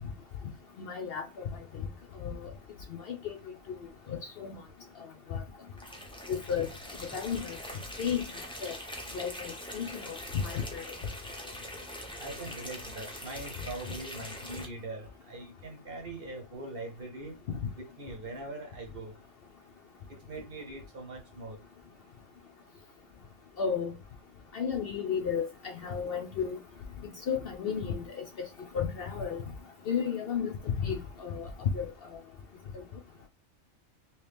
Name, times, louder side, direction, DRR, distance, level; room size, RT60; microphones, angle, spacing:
voice 1, 0.8-1.4 2.2-2.5 3.1-3.3 3.7-3.8 4.1-4.6 5.3-5.4 6.3-6.7 7.1-7.6 8.0-8.2 8.6-8.8 9.1-10.2 10.4-10.8 23.6-23.9 24.5-26.6 27.3-28.2 28.7-29.4 29.9-30.5 30.8-31.5 31.7-31.9, left 7 dB, 60° left, 0.7 m, -33 dB
sound 1, 5.8-14.7, equal, 5° left, 0.6 m, -43 dB
voice 2, 12.2-17.3 17.8-19.1 20.3-21.6, right 2 dB, 50° right, 1.0 m, -42 dB
3.1 x 3.0 x 3.3 m
omnidirectional pair, 1.3 m